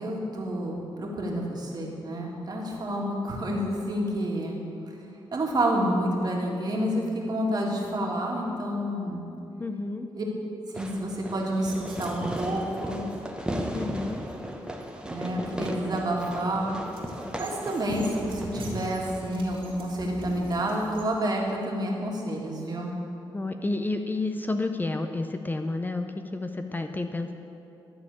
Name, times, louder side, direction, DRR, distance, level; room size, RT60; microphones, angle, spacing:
voice 1, 0.0-4.6 5.3-9.3 10.1-10.2 10.7-13.0 15.0-16.7 17.4-22.9, right 1 dB, 45° right, -1 dB, 1.9 m, -29 dB
voice 2, 9.6-10.1 13.7-14.2 23.3-27.3, left 2 dB, 20° left, 6 dB, 0.5 m, -30 dB
Fireworks, 10.7-19.8, equal, 10° right, 0.9 m, -36 dB
sound 1, 11.5-21.2, right 2 dB, 75° right, 2.4 m, -45 dB
12.5 x 4.3 x 8.3 m, 2.8 s
cardioid pair, 90°, 9 cm